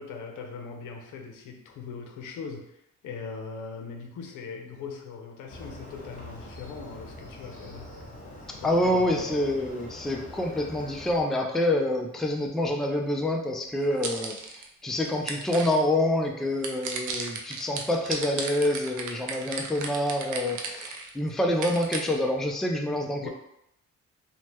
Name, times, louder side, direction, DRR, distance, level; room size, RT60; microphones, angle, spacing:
voice 1, 0.0-7.9 8.6-9.4 23.2-23.3, left 5 dB, 85° left, 2 dB, 0.6 m, -40 dB
Motorcycle, 5.5-11.2, left 2 dB, 25° left, 0.9 m, -43 dB
voice 2, 8.5-23.3, left 1 dB, ahead, 2 dB, 0.3 m, -27 dB
sound 1, 13.8-14.7 15.1-15.8 16.6-21.1 21.5-22.1, right 5 dB, 80° right, 0.5 m, -34 dB
2.8 x 2.1 x 3.3 m, 0.79 s
cardioid pair, 90°, 30 cm